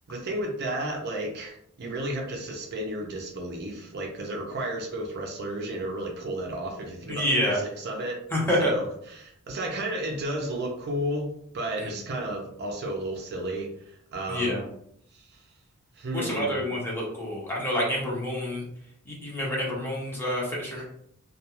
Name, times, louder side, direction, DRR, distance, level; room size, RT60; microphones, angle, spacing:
voice 1, 0.1-8.2 8.6-14.6 15.1-15.3 16.0-16.6 20.7-20.8, right 1 dB, 50° right, 1 dB, 0.5 m, -33 dB
voice 2, 7.1-7.6 8.3-8.7 11.8-11.9 14.3-14.6 16.1-18.6 19.1-20.8, equal, 10° left, -4 dB, 0.7 m, -28 dB
2.3 x 2.2 x 2.9 m, 0.70 s
head